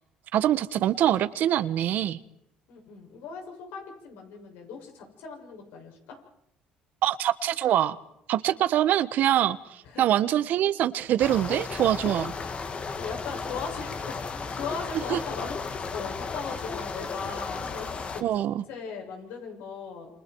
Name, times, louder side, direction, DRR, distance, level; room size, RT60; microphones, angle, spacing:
voice 1, 0.3-2.2 7.0-8.0 8.3-9.6 10.0-12.3 15.1-15.2 18.2-18.6, right 11 dB, 65° right, 14 dB, 1.2 m, -24 dB
voice 2, 2.7-6.2 9.8-10.1 13.0-15.5 15.9-20.1, left 5 dB, 80° left, 3 dB, 7.1 m, -38 dB
sound 1, 11.2-18.2, left 4 dB, 40° left, 2.4 m, -34 dB
28.5 x 28.0 x 4.7 m, 0.77 s
supercardioid pair, 90°, 3 cm